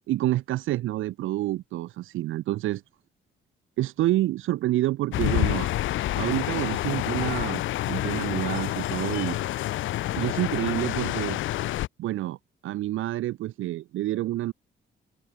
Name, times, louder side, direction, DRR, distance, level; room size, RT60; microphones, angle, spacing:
voice 1, 0.1-2.8 3.8-5.7 6.1-7.6 7.9-9.4 10.1-11.4 12.0-12.4 12.6-14.5, right 15 dB, 85° right, 1.7 m, -28 dB
sound 1, 5.1-11.9, left 15 dB, 75° left, 0.7 m, -28 dB
open air
cardioid pair, 90°, 20 cm